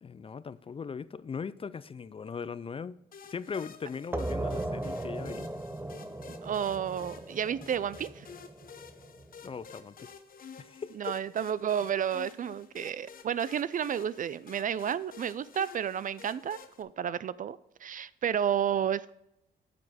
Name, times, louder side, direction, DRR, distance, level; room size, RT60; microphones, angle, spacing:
voice 1, 0.0-3.0 3.3-5.5 9.4-10.1 10.6-11.1, left 6 dB, 30° left, 17 dB, 0.4 m, -39 dB
sound 1, 3.1-16.8, left 6 dB, 45° left, 0.9 m, -51 dB
sound 2, 4.1-9.5, right 2 dB, 10° right, 0.7 m, -37 dB
voice 2, 6.4-8.3 11.0-19.1, right 9 dB, 45° right, 18 dB, 0.4 m, -31 dB
8.7 x 6.4 x 4.9 m, 0.87 s
cardioid pair, 90°, 20 cm